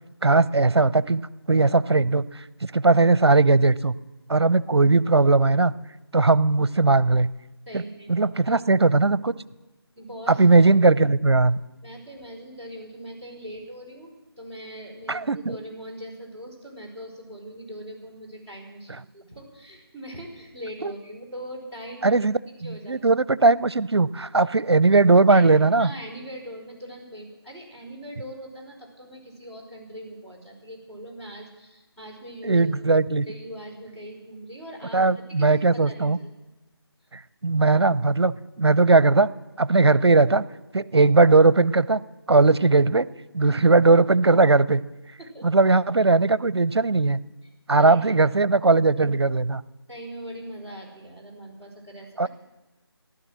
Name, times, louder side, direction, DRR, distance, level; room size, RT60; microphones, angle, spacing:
voice 1, 0.2-1.2 1.5-3.9 4.3-5.7 6.1-7.3 7.7-7.8 8.1-9.3 10.3-11.6 15.1-15.6 20.8-20.9 22.0-25.9 32.4-33.3 34.9-36.2 37.1-39.3 39.6-40.4 40.7-42.0 42.3-43.1 43.3-44.8 45.4-47.2 47.7-49.6 52.2-52.3, right 3 dB, 75° right, 18 dB, 0.7 m, -19 dB
voice 2, 7.7-8.1 8.5-8.6 10.0-10.7 11.8-22.2 22.6-23.0 25.3-32.6 33.3-36.3 43.4-43.5 45.2-45.5 47.8-48.0 49.9-52.3, equal, 5° left, -9 dB, 3.6 m, -41 dB
15.0 x 11.5 x 7.5 m, 1.1 s
figure-of-eight pair, 165°, 14 cm